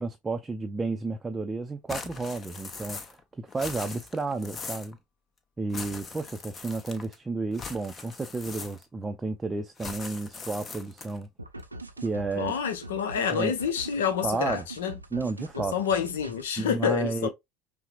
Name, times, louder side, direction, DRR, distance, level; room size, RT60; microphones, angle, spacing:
voice 1, 0.0-5.0 5.6-11.3 12.0-12.5 13.3-13.5 14.2-14.6 15.1-15.7 16.6-17.3, right 3 dB, 20° right, 0.5 m, -32 dB
sound 1, 1.9-3.2 3.5-4.9 5.7-7.2 7.5-9.0 9.8-11.2, left 4 dB, 30° left, 0.8 m, -40 dB
sound 2, 11.4-16.5, right 2 dB, 90° right, 0.3 m, -42 dB
voice 2, 12.4-15.0 15.6-17.3, left 7 dB, 70° left, 0.7 m, -28 dB
5.5 x 2.1 x 2.4 m
figure-of-eight pair, 70°, 0 cm